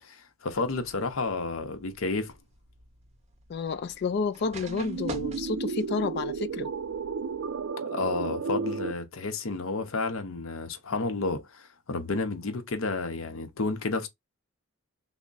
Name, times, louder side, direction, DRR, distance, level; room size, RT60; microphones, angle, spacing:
voice 1, 0.0-2.3 7.8-14.1, left 3 dB, 70° left, 0.7 m, -31 dB
sound 1, 0.5-7.7, right 2 dB, 30° right, 0.6 m, -47 dB
voice 2, 3.5-6.7, left 4 dB, 50° left, 0.3 m, -30 dB
sound 2, 4.6-8.9, right 5 dB, 75° right, 0.4 m, -33 dB
3.5 x 2.0 x 3.9 m
head